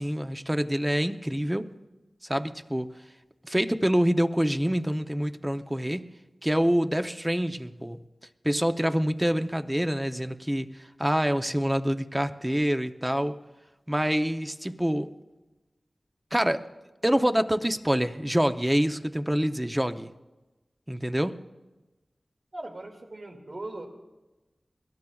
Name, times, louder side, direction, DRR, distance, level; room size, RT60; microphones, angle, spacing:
voice 1, 0.0-1.7 2.3-2.9 3.5-6.1 6.4-8.0 8.4-10.7 11.0-13.4 13.9-15.1 16.3-16.6 17.0-20.1 20.9-21.4, equal, 10° right, 8 dB, 0.7 m, -26 dB
voice 2, 22.5-23.9, right 2 dB, 55° right, 3 dB, 2.2 m, -39 dB
23.0 x 18.0 x 2.4 m, 1.1 s
wide cardioid pair, 80°, 0 cm